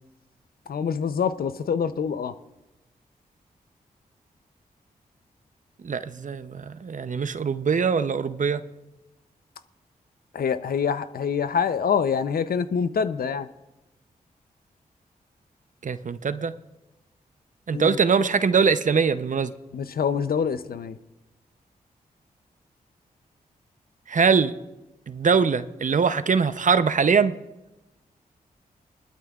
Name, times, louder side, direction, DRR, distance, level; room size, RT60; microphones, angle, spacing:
voice 1, 0.7-2.3 10.3-13.5 17.7-18.0 19.7-21.0, left 6 dB, 70° left, 13 dB, 0.6 m, -25 dB
voice 2, 5.8-8.6 15.8-16.5 17.7-19.5 24.1-24.5 25.1-27.3, right 5 dB, 55° right, 12 dB, 0.7 m, -22 dB
20.0 x 12.5 x 2.4 m, 0.99 s
supercardioid pair, 40°, 16 cm